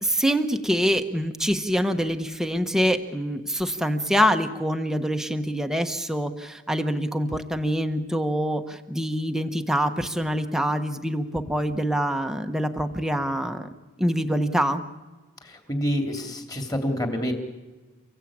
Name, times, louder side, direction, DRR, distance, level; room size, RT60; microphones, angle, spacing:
voice 1, 0.0-13.7 14.0-14.8, equal, ahead, 6 dB, 1.1 m, -25 dB
voice 2, 15.4-17.3, equal, 15° left, 4 dB, 2.9 m, -27 dB
30.0 x 15.5 x 8.8 m, 1.3 s
head